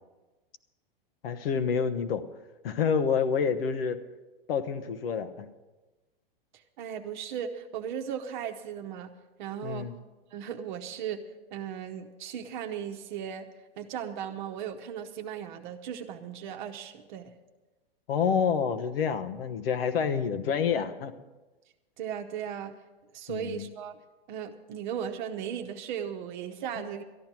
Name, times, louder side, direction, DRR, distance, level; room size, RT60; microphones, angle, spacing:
voice 1, 1.2-2.2 2.6-4.0 4.5-5.5 9.6-9.9 18.1-21.1 23.3-23.7, left 6 dB, 75° left, 9 dB, 1.1 m, -28 dB
voice 2, 6.8-9.1 9.4-9.9 10.3-11.2 11.5-13.5 13.8-17.3 22.0-22.7 23.1-24.0 24.3-27.0, right 8 dB, 55° right, 5 dB, 1.0 m, -36 dB
13.5 x 10.5 x 5.9 m, 1.2 s
hypercardioid pair, 140°, 29 cm